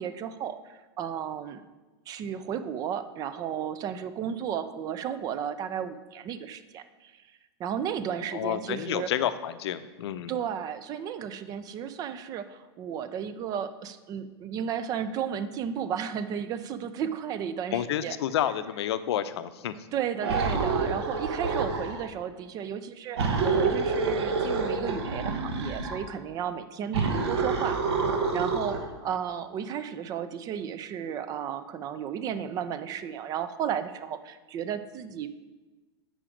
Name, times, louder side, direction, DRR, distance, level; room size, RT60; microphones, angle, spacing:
voice 1, 0.0-1.6 2.1-7.2 7.6-9.1 10.3-18.2 19.9-35.3, right 8 dB, 30° right, 11 dB, 0.4 m, -34 dB
voice 2, 8.3-10.3 17.7-19.7, left 10 dB, 85° left, 12 dB, 0.5 m, -29 dB
sound 1, 20.2-22.1 23.2-26.0 26.9-28.9, right 4 dB, 80° right, 1.1 m, -27 dB
7.4 x 5.0 x 5.0 m, 1.2 s
supercardioid pair, 140°, 14 cm